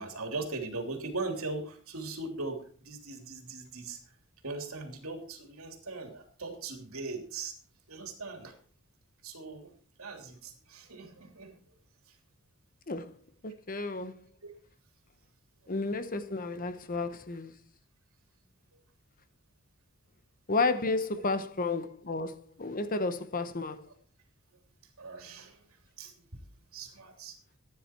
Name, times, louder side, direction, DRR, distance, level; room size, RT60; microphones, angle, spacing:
voice 1, 0.0-4.1 4.4-7.5 7.9-8.6 9.2-11.6 12.1-12.2 14.4-14.5 23.9-24.0 25.0-25.7 26.0-26.4 26.7-27.4, right 3 dB, 75° right, 3.2 m, -40 dB
voice 2, 13.4-14.2 15.7-17.5 20.5-23.8, left 3 dB, 40° left, 1.0 m, -32 dB
15.0 x 10.0 x 4.5 m
head